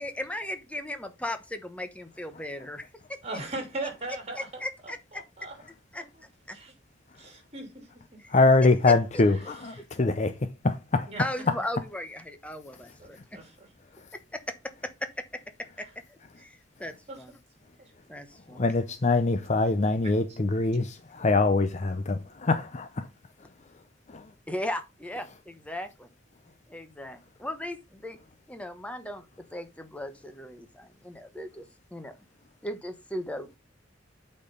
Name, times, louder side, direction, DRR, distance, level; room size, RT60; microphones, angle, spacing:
voice 1, 0.0-3.2 4.1-5.2 5.9-6.0 6.5-6.6 8.2-8.3 11.2-13.4 14.1-14.6 14.8-15.1 15.8-17.4 18.1-18.7 24.5-26.1 26.7-28.2 28.5-29.3 29.5-32.1 32.6-33.5, left 1 dB, 5° left, 1.0 m, -37 dB
voice 2, 3.2-4.4 5.4-5.5 5.9-6.0 6.5-6.7 7.2-8.2 11.1-11.2 13.0-13.7 17.1-17.2 17.8-17.9, right 2 dB, 35° right, 3.1 m, -38 dB
voice 3, 8.3-11.1 18.5-23.1 24.1-24.3, left 3 dB, 40° left, 0.6 m, -24 dB
8.4 x 4.5 x 5.2 m
head